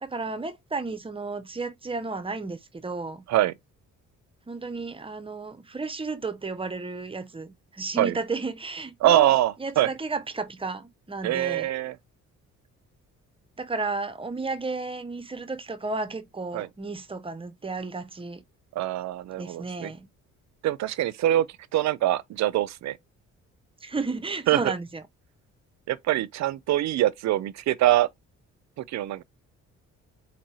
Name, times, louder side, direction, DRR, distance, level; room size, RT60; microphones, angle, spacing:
voice 1, 0.0-3.3 4.5-9.3 9.6-11.7 13.6-18.4 19.4-20.1 23.8-25.0, right 3 dB, 20° right, 0.5 m, -33 dB
voice 2, 9.0-9.9 11.2-11.9 16.5-16.7 18.8-19.9 20.6-21.5 21.7-23.0 24.5-24.7 25.9-28.1 28.8-29.2, right 13 dB, 65° right, 0.5 m, -24 dB
4.2 x 2.7 x 3.0 m
cardioid pair, 90°, 30 cm